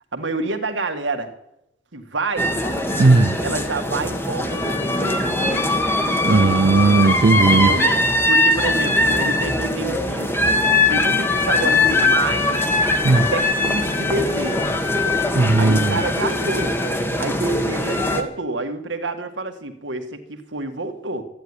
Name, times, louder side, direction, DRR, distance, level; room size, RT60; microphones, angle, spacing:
voice 1, 0.1-1.3 1.9-2.5 3.4-5.3 7.3-8.0 8.3-10.5 10.9-12.6 13.1-14.7 15.6-16.8 17.2-21.2, right 3 dB, 85° right, 1.9 m, -28 dB
sound 1, 2.4-18.2, left 2 dB, 10° left, 1.4 m, -21 dB
voice 2, 3.0-3.4 6.3-7.7 13.0-13.3 15.3-16.0, right 3 dB, 60° right, 0.6 m, -16 dB
14.0 x 10.5 x 9.7 m
head